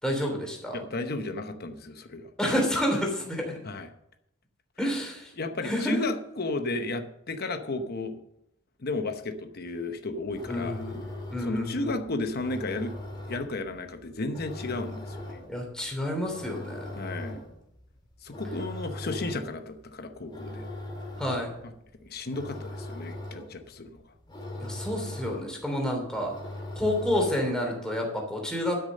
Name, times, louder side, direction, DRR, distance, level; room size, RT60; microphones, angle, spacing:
voice 1, 0.0-0.8 2.4-3.6 4.8-5.3 5.6-6.1 10.5-11.0 11.3-11.9 15.5-16.9 21.2-21.5 24.6-26.4 26.7-28.8, left 1 dB, 5° left, 0 dB, 3.1 m, -29 dB
voice 2, 0.7-2.3 3.6-3.9 5.4-8.2 8.8-10.8 11.4-13.0 13.3-15.4 16.9-17.4 18.2-20.6 22.0-24.1, left 2 dB, 50° left, 7 dB, 0.9 m, -33 dB
sound 1, 10.2-27.7, left 1 dB, 20° left, 2.2 m, -41 dB
12.5 x 6.5 x 6.5 m, 0.80 s
head